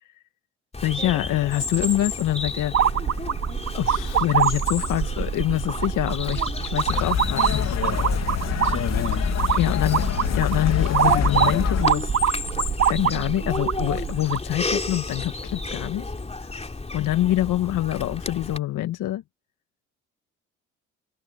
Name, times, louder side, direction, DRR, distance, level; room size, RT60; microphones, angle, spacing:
Bird vocalization bird call bird song, 0.7-18.6, left 3 dB, 20° left, 3.5 m, -32 dB
voice 1, 0.8-2.7 3.7-7.8 8.9-9.0 9.5-12.1 12.9-16.0 16.4-19.2, left 14 dB, 65° left, 1.7 m, -25 dB
sound 1, 2.7-14.5, right 8 dB, 50° right, 3.7 m, -25 dB
sound 2, 6.9-11.8, left 8 dB, 50° left, 2.8 m, -25 dB
hypercardioid pair, 60°, 33 cm